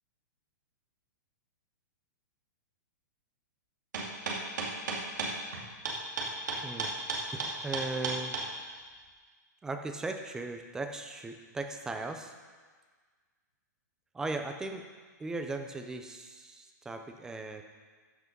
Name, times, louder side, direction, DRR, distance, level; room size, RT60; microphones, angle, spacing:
sound 1, 3.9-8.4, right 4 dB, 75° right, 2.4 m, -33 dB
voice 1, 6.6-6.9 7.4-8.3 9.6-12.3 14.1-14.9 15.2-17.6, right 2 dB, 5° right, 6 dB, 0.5 m, -37 dB
14.0 x 6.0 x 5.3 m, 1.5 s
hypercardioid pair, 170°, 10 cm